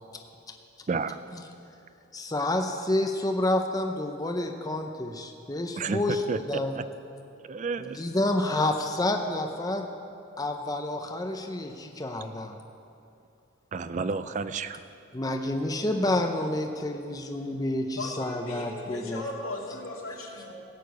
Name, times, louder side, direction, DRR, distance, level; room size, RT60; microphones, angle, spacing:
voice 1, 0.9-1.2 5.8-6.8 7.4-8.0 13.7-14.8, right 4 dB, 35° right, 12 dB, 0.4 m, -31 dB
voice 2, 2.1-6.7 7.8-9.9 10.4-12.5 15.1-19.3, left 1 dB, 20° left, 4 dB, 0.6 m, -29 dB
voice 3, 18.0-20.5, left 2 dB, 85° left, -2 dB, 2.4 m, -37 dB
17.0 x 6.7 x 8.0 m, 2.6 s
head